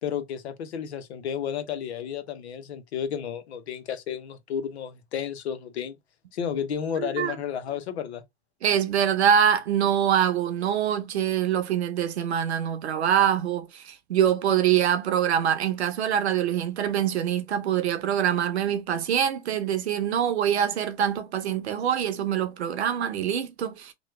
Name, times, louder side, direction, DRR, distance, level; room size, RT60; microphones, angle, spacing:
voice 1, 0.0-6.0 6.3-8.2, left 8 dB, 85° left, 0.8 m, -32 dB
voice 2, 7.0-7.4 8.6-23.9, right 9 dB, 90° right, 0.8 m, -24 dB
3.0 x 2.2 x 3.1 m
hypercardioid pair, 105°, 32 cm